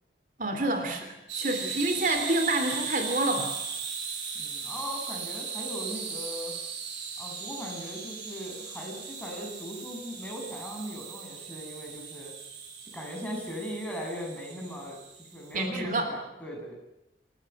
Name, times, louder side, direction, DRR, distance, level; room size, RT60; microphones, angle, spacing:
voice 1, 0.4-3.5 15.5-16.1, right 2 dB, 50° right, 6 dB, 3.2 m, -28 dB
sound 1, 1.3-15.6, right 6 dB, 85° right, 6.6 m, -38 dB
voice 2, 4.3-6.5 7.2-12.3 12.8-16.8, equal, 10° left, -1 dB, 7.7 m, -39 dB
28.0 x 16.5 x 9.7 m, 0.88 s
head